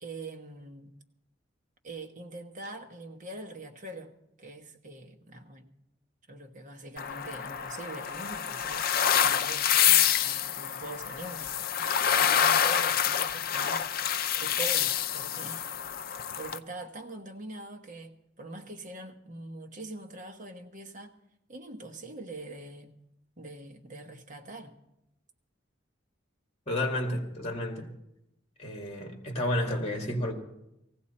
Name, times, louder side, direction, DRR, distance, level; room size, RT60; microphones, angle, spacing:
voice 1, 0.0-0.9 1.8-4.1 4.4-5.7 6.3-8.9 9.1-13.9 14.4-16.0 16.3-18.1 18.4-21.1 21.5-22.9 23.4-24.8, right 2 dB, 40° right, 1.2 m, -43 dB
sound 1, 7.0-16.6, left 9 dB, 50° left, 0.5 m, -27 dB
voice 2, 26.7-27.9 28.6-30.3, left 1 dB, 35° left, 2.1 m, -31 dB
18.5 x 15.5 x 4.3 m
head